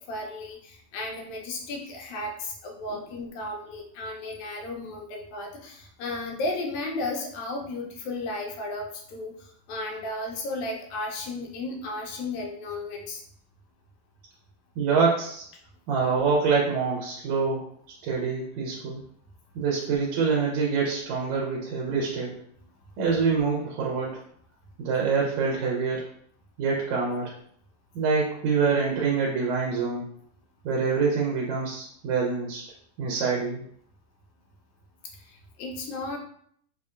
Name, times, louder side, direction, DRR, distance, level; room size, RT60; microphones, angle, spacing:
voice 1, 0.1-13.2 35.2-36.2, left 2 dB, 80° left, 0 dB, 2.1 m, -34 dB
voice 2, 14.8-15.5 15.9-17.7 18.0-19.0 19.6-22.3 23.0-24.2 24.8-26.1 26.6-27.4 28.0-30.1 30.6-32.6 33.0-33.6, right 5 dB, 80° right, -2 dB, 2.0 m, -25 dB
5.4 x 2.7 x 2.4 m, 0.63 s
omnidirectional pair, 3.4 m